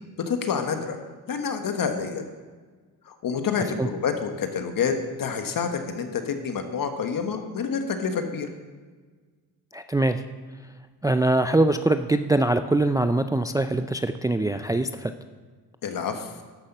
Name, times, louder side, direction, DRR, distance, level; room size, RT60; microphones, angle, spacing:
voice 1, 0.3-1.0 1.3-2.3 3.1-8.5 15.8-16.3, left 6 dB, 60° left, 6 dB, 1.4 m, -28 dB
voice 2, 9.7-10.2 11.0-15.1, right 2 dB, 10° right, 9 dB, 0.4 m, -23 dB
13.0 x 5.7 x 5.5 m, 1.4 s
cardioid pair, 75°, 39 cm